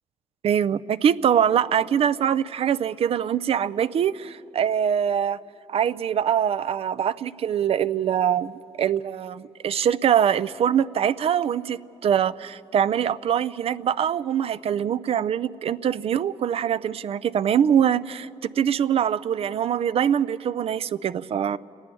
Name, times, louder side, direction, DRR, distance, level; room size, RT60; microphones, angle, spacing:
voice 1, 0.4-5.4 5.7-8.5 8.8-18.3 18.6-21.6, right 9 dB, 55° right, 0.5 m, -23 dB
28.0 x 10.5 x 9.8 m
cardioid pair, 80°, 12 cm